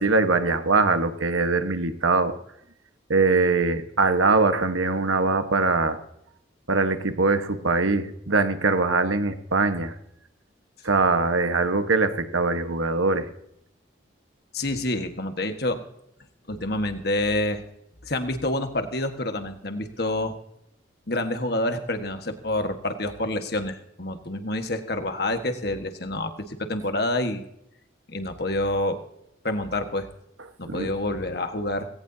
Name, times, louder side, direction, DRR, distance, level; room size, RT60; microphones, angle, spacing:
voice 1, 0.0-2.3 3.1-6.0 6.7-9.9 10.8-13.3 30.7-30.9, right 3 dB, 90° right, 8 dB, 1.4 m, -22 dB
voice 2, 14.5-15.8 16.5-17.6 18.0-20.3 21.1-27.4 28.1-29.0 29.4-30.1 30.6-31.9, left 1 dB, 55° left, 6 dB, 1.6 m, -27 dB
19.0 x 17.5 x 2.8 m, 0.77 s
head